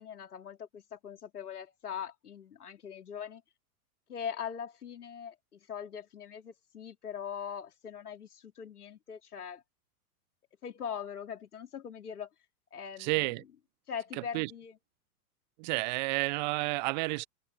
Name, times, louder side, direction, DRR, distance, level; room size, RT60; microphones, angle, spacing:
voice 1, 0.0-3.4 4.1-9.6 10.6-12.3 12.7-13.5 13.9-14.8, left 8 dB, 85° left, 3.8 m, -41 dB
voice 2, 13.0-13.4 14.3-14.5 15.6-17.3, right 24 dB, 35° right, 0.4 m, -30 dB
hypercardioid pair, 105°, 44 cm